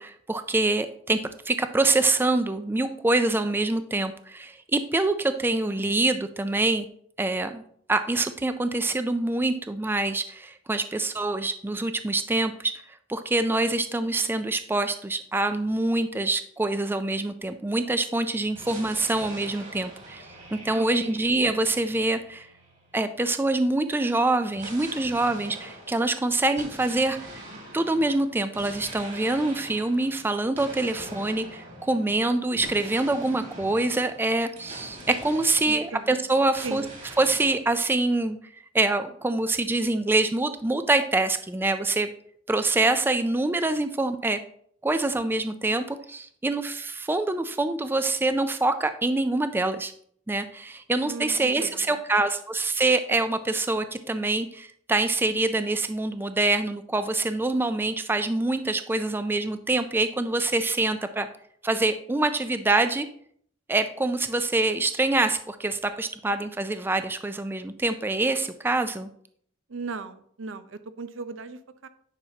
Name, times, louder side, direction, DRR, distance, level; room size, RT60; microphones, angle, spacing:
voice 1, 0.0-1.2 1.5-6.9 7.2-7.6 7.9-12.7 13.1-22.5 22.9-27.4 27.7-36.8 37.2-38.4 38.7-42.1 42.5-44.4 44.8-49.9 50.3-61.3 61.6-63.1 63.7-69.1, right 2 dB, 10° right, 10 dB, 0.3 m, -25 dB
sound 1, 18.5-23.3 24.5-36.2 36.5-37.6, right 1 dB, 45° right, 3.1 m, -44 dB
voice 2, 20.8-21.2 35.7-36.1 36.6-36.9 51.1-52.0 69.7-71.9, right 4 dB, 80° right, 12 dB, 0.6 m, -37 dB
9.9 x 5.7 x 2.8 m, 0.63 s
head